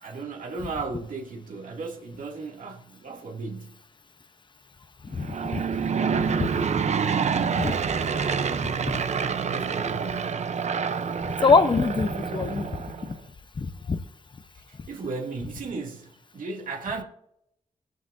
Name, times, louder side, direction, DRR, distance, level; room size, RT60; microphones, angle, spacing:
voice 1, 0.0-3.8 9.4-10.3 14.9-17.0, right 3 dB, 75° right, 2.4 m, -35 dB
voice 2, 5.1-5.6 6.1-6.6 7.5-7.8 8.8-9.0 11.4-13.2 13.6-14.0, left 4 dB, 35° left, 0.8 m, -24 dB
Aircraft / Engine, 5.1-13.1, right 6 dB, 55° right, 0.7 m, -27 dB
20.5 x 9.2 x 2.7 m
wide cardioid pair, 110°, 14 cm